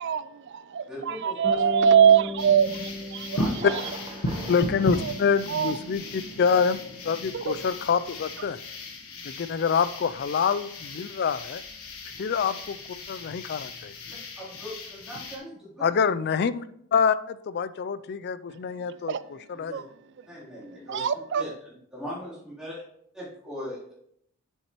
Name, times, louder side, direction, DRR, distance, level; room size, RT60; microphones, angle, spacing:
voice 1, 0.0-3.4 5.0-5.1 5.5-5.7 7.3-7.6 19.1-19.2 19.7-19.8 20.9-21.4, right 8 dB, 50° right, 15 dB, 0.4 m, -23 dB
voice 2, 0.9-1.6 2.1-2.3 3.3-3.7 14.4-16.4 19.5-19.8 20.3-21.1 21.3-22.8 23.1-23.9, equal, 5° right, -9 dB, 3.3 m, -40 dB
Bass guitar, 1.4-5.6, left 3 dB, 25° left, 2.3 m, -37 dB
sound 1, 2.4-15.4, left 1 dB, 75° left, 1.3 m, -36 dB
Thunder, 3.5-6.1 6.4-6.5 7.0-7.1, right 2 dB, 25° right, 1.0 m, -42 dB
voice 3, 4.5-6.8 7.0-8.6 9.2-11.6 12.2-12.8 13.1-13.9 15.8-16.7 16.9-19.7, left 6 dB, 45° left, 15 dB, 0.3 m, -26 dB
7.9 x 7.2 x 3.0 m, 0.71 s
head